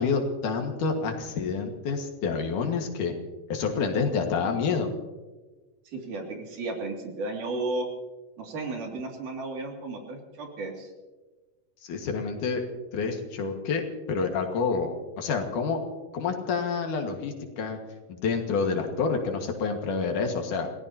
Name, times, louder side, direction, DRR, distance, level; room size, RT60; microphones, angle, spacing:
voice 1, 0.0-3.1 3.5-4.9 11.8-12.6 12.9-13.8 14.1-15.8 16.1-17.8 18.1-20.7, left 5 dB, 75° left, 3 dB, 3.2 m, -28 dB
voice 2, 5.9-7.9 8.4-10.9, right 2 dB, 75° right, 1 dB, 4.0 m, -34 dB
29.0 x 17.5 x 2.8 m, 1.2 s
omnidirectional pair, 3.7 m